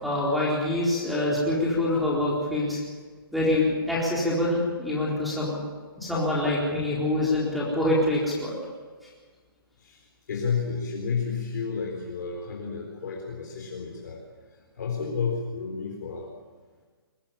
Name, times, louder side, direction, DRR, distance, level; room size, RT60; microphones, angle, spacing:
voice 1, 0.0-2.8 3.3-5.6 6.0-8.5, left 1 dB, ahead, -7 dB, 4.2 m, -25 dB
voice 2, 10.3-14.2 14.7-16.3, left 5 dB, 50° left, 0 dB, 4.0 m, -31 dB
22.5 x 17.5 x 7.4 m, 1.5 s
hypercardioid pair, 170°, 12 cm